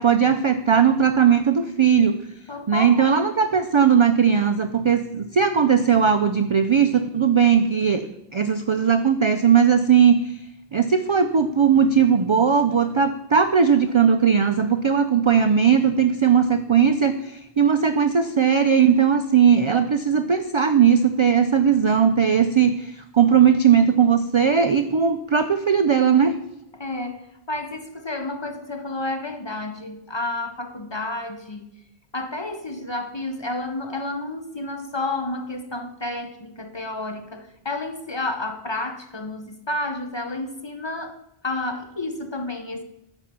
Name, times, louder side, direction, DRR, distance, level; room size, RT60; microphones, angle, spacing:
voice 1, 0.0-2.2 2.7-10.4 10.7-26.4, right 7 dB, 55° right, 8 dB, 0.3 m, -18 dB
voice 2, 2.5-3.2 26.8-31.7 32.1-41.2 41.4-42.8, left 2 dB, 30° left, 6 dB, 0.6 m, -30 dB
9.2 x 4.3 x 6.0 m, 0.83 s
omnidirectional pair, 1.1 m